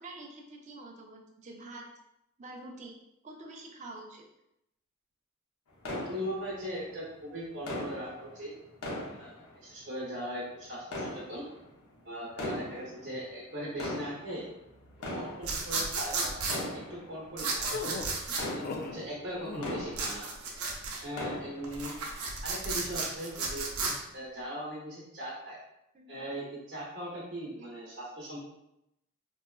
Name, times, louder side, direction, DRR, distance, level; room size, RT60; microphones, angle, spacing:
voice 1, 0.0-1.8 2.4-3.0 3.2-4.2 25.9-26.3 27.6-27.7, right 2 dB, 35° right, 0 dB, 0.5 m, -46 dB
sound 1, 5.8-6.9 7.7-10.0 10.8-11.8 12.3-13.2 13.6-20.6 20.9-22.0 22.4-22.5 23.1-23.3, left 1 dB, 90° left, 0.7 m, -40 dB
voice 2, 5.9-8.5 9.2-11.5 12.0-14.5 15.1-16.3 16.9-17.8 18.5-20.3 21.0-21.9 22.4-23.7 24.1-25.6 26.1-28.4, equal, 50° right, -7 dB, 0.8 m, -39 dB
sound 2, 15.4-16.6 17.4-18.4 19.9-21.0 21.6-23.9, right 4 dB, 80° right, 0.6 m, -33 dB
sound 3, 17.7-19.0 19.4-19.9, left 4 dB, 45° left, 0.3 m, -38 dB
3.9 x 2.3 x 2.3 m, 0.83 s
head